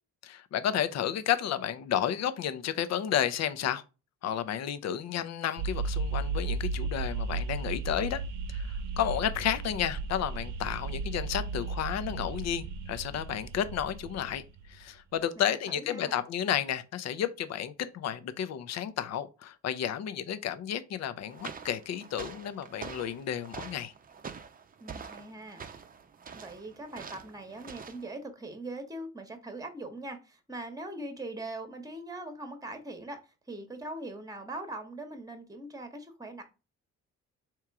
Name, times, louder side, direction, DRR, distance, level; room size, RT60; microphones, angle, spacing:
voice 1, 0.2-3.8 4.2-8.2 8.5-14.4 14.7-23.9, left 10 dB, 60° left, 0.6 m, -32 dB
sound 1, 5.6-14.8, right 4 dB, 85° right, 0.8 m, -35 dB
voice 2, 15.4-16.2 24.8-25.6 26.3-36.4, right 2 dB, 10° right, 1.0 m, -41 dB
sound 2, 21.2-28.1, right 6 dB, 30° right, 0.6 m, -45 dB
3.6 x 3.0 x 4.6 m
cardioid pair, 90°, 30 cm